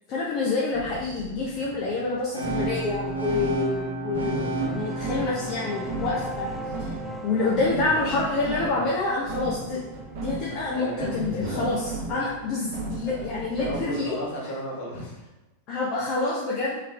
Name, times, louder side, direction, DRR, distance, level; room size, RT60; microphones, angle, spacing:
voice 1, 0.1-6.5 6.8-6.9 7.2-9.8 10.2-14.2 15.7-16.8, left 3 dB, 40° left, -4 dB, 0.7 m, -27 dB
sound 1, 0.7-14.2, right 3 dB, 50° right, 1.0 m, -36 dB
sound 2, 2.3-8.3, right 2 dB, 85° right, 0.9 m, -33 dB
sound 3, 4.5-13.8, right 1 dB, ahead, 0.4 m, -42 dB
voice 2, 10.7-11.1 11.3-11.8 12.6-12.7 13.0-15.3, equal, 55° left, -3 dB, 1.3 m, -34 dB
3.8 x 3.3 x 3.3 m, 1.1 s
figure-of-eight pair, 90°, 0 cm